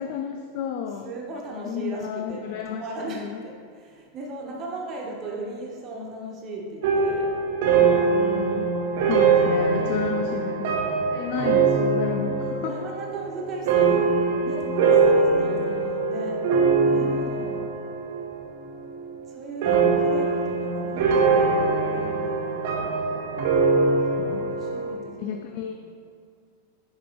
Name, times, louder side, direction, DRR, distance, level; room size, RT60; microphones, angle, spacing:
voice 1, 0.0-1.1 1.6-3.4 7.8-8.7 9.1-10.7 11.1-12.9 19.7-20.1 24.2-24.5 25.2-25.7, left 8 dB, 45° left, 5 dB, 0.4 m, -32 dB
voice 2, 1.0-7.3 9.7-10.1 11.4-11.8 12.7-14.1 14.4-16.4 16.8-17.6 19.3-22.7 24.2-25.7, right 2 dB, 30° right, -1 dB, 1.3 m, -37 dB
sound 1, 6.8-18.3 18.6-19.2 19.6-25.0, right 4 dB, 50° right, 1.0 m, -22 dB
9.8 x 4.5 x 3.0 m, 2.2 s
figure-of-eight pair, 90°, 0 cm